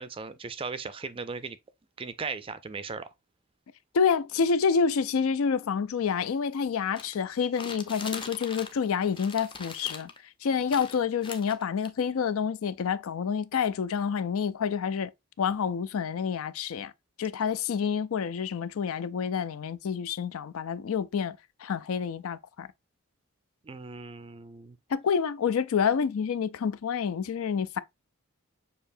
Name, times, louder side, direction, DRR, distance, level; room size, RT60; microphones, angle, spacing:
voice 1, 0.0-1.6 2.0-3.1 23.6-24.8, right 4 dB, 25° right, 0.4 m, -37 dB
voice 2, 3.9-10.1 10.4-15.1 15.4-16.9 17.2-22.7 24.9-27.8, left 6 dB, 70° left, 0.4 m, -28 dB
sound 1, 6.9-8.9 9.1-10.2 10.7-11.9, left 4 dB, 20° left, 0.6 m, -41 dB
6.7 x 2.8 x 2.6 m
head